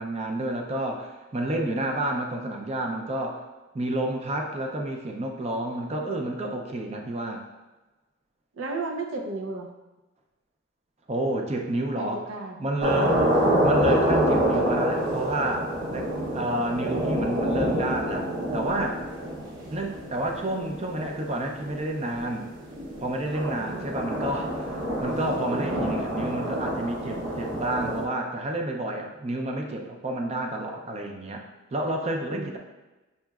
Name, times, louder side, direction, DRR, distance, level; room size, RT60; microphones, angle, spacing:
voice 1, 0.0-3.4 3.7-7.4 11.1-12.2 12.6-13.3 13.6-16.1 16.3-19.0 19.7-22.5 23.0-31.4 31.7-32.6, right 1 dB, 35° right, 2 dB, 0.5 m, -30 dB
voice 2, 8.5-9.7 12.0-12.6 32.3-32.6, right 3 dB, 90° right, 2 dB, 0.6 m, -33 dB
sound 1, 12.8-28.0, equal, 65° right, 0.8 m, -27 dB
5.4 x 2.9 x 2.3 m, 1.1 s
head